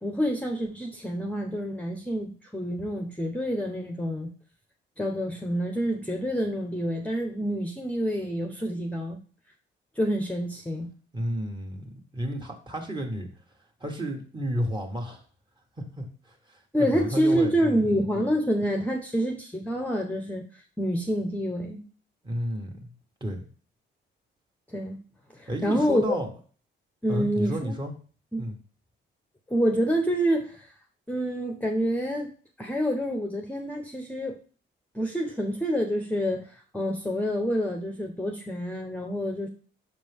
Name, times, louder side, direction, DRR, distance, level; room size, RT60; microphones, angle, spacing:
voice 1, 0.0-4.3 5.0-9.2 10.0-10.9 16.7-20.4 20.8-21.8 24.7-25.0 25.3-26.2 27.0-27.7 28.3-28.5 29.5-30.7 31.1-32.3 32.6-34.4 34.9-39.5, equal, 5° left, 2 dB, 1.0 m, -27 dB
voice 2, 11.1-13.3 13.8-15.2 16.0-18.0 22.2-22.7 23.2-23.5 25.5-26.3 27.1-27.9 28.4-28.6, equal, 25° right, 2 dB, 1.7 m, -32 dB
6.0 x 5.1 x 3.6 m, 0.40 s
cardioid pair, 90°, 20 cm